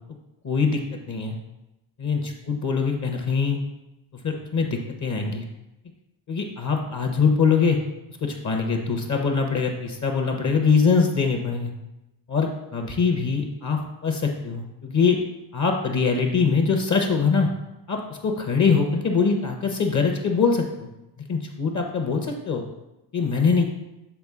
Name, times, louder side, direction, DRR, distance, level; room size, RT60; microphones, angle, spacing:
voice 1, 0.4-1.4 2.0-2.2 2.5-3.6 4.2-5.4 6.3-7.8 8.2-11.7 12.3-15.2 15.5-17.5 17.9-20.9 21.3-22.6 23.1-23.6, left 5 dB, 35° left, 3 dB, 0.8 m, -23 dB
7.1 x 3.6 x 3.6 m, 0.95 s
cardioid pair, 90°, 49 cm